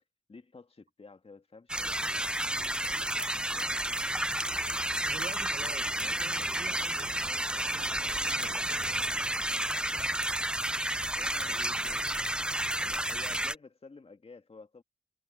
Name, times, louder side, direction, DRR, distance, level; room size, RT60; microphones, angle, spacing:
voice 1, 0.3-4.3 11.1-12.1 12.8-14.8, left 3 dB, 35° left, 2.2 m, -52 dB
sound 1, 1.7-13.5, right 1 dB, 5° right, 0.4 m, -31 dB
voice 2, 5.0-9.3 11.4-12.1, right 6 dB, 50° right, 1.5 m, -49 dB
Car passing by, 5.4-12.2, right 9 dB, 75° right, 2.2 m, -55 dB
supercardioid pair, 55°, 18 cm